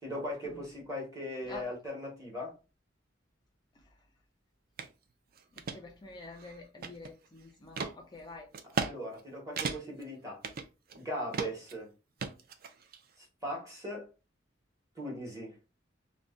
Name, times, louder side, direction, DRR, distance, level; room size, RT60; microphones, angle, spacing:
voice 1, 0.0-2.5 8.7-10.4 10.9-11.9 13.2-14.1 15.0-15.6, equal, 20° right, 1.1 m, -39 dB
sound 1, 4.8-4.9 5.4-5.8 6.3-7.3 7.8-7.9 8.5-8.9 9.2-9.3 9.6-10.0 10.4-11.0 11.3-11.7 12.2-13.0, right 5 dB, 50° right, 0.4 m, -36 dB
voice 2, 5.7-8.5, left 3 dB, 25° left, 0.4 m, -47 dB
2.5 x 2.1 x 3.6 m
head